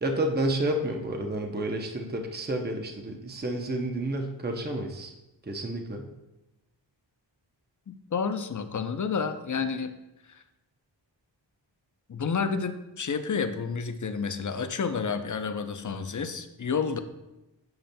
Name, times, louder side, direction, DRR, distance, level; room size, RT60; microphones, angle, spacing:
voice 1, 0.0-5.1 5.5-6.1, right 1 dB, 20° right, 3 dB, 0.7 m, -30 dB
voice 2, 7.9-9.9 10.3-10.4 12.1-17.0, left 5 dB, 45° left, 9 dB, 0.6 m, -30 dB
7.9 x 6.9 x 2.2 m, 0.98 s
wide cardioid pair, 65°, 44 cm